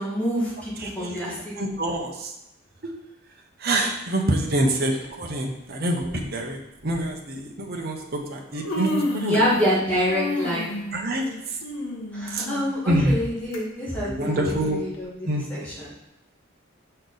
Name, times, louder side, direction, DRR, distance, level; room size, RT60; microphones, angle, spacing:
voice 1, 0.0-1.5 9.3-10.7 12.1-15.9, equal, 5° left, -7 dB, 1.9 m, -26 dB
voice 2, 0.8-2.3 2.8-2.9 3.6-9.4 10.9-11.6 12.3-12.5 12.8-13.2 14.0-14.8 15.2-15.7, right 1 dB, 45° right, 1 dB, 0.9 m, -26 dB
Human voice, 4.8-5.1 6.1-6.2 6.8-7.0 8.0-8.1 8.4-9.8 10.1-13.6 14.0-14.1 14.9-15.0, left 1 dB, 70° left, 1.2 m, -31 dB
6.5 x 4.5 x 4.0 m, 0.87 s
head